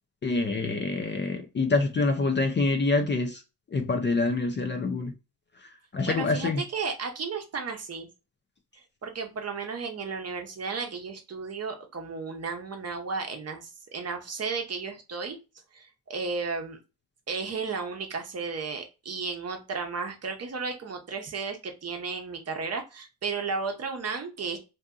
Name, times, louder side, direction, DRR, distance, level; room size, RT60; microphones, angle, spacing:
voice 1, 0.2-3.4 3.7-5.1 5.9-6.6, left 3 dB, 30° left, 0.5 m, -26 dB
voice 2, 6.1-8.1 9.0-15.4 15.7-16.8 17.3-24.6, right 4 dB, 40° right, 0.7 m, -34 dB
2.7 x 2.6 x 2.3 m
cardioid pair, 75°, 40 cm